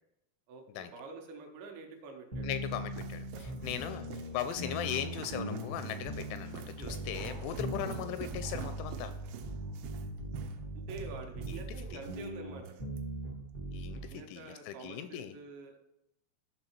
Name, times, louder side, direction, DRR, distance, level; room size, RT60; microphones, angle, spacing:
voice 1, 0.5-2.5 3.3-3.6 6.8-7.5 10.7-12.8 13.9-15.8, right 4 dB, 75° right, 2 dB, 3.2 m, -47 dB
sound 1, 2.3-14.1, right 1 dB, 55° right, 0.9 m, -40 dB
voice 2, 2.4-9.1 11.5-12.0 13.7-15.3, left 10 dB, 85° left, 11 dB, 2.8 m, -39 dB
sound 2, 2.4-12.3 12.6-13.0, right 11 dB, 90° right, 3.4 m, -48 dB
sound 3, 4.6-9.9, right 1 dB, 20° right, 0.7 m, -58 dB
13.5 x 6.0 x 4.5 m, 0.83 s
omnidirectional pair, 5.6 m